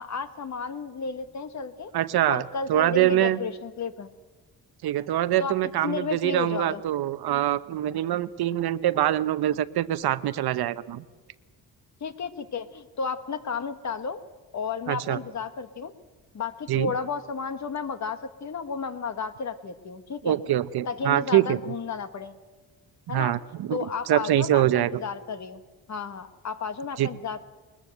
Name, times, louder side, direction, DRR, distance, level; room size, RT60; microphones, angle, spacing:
voice 1, 0.0-1.9 2.3-4.1 5.4-6.8 12.0-14.2 14.5-15.9 16.3-20.4 20.8-22.3 23.1-23.4 23.7-25.6 25.9-27.5, left 5 dB, 45° left, 11 dB, 1.5 m, -32 dB
voice 2, 1.9-2.4 2.7-3.4 4.8-11.0 14.9-15.2 16.7-16.9 20.2-21.6 23.1-23.8 24.1-24.9 27.0-27.1, right 13 dB, 70° right, 14 dB, 0.9 m, -24 dB
21.5 x 20.0 x 8.0 m, 1.3 s
cardioid pair, 135°, 39 cm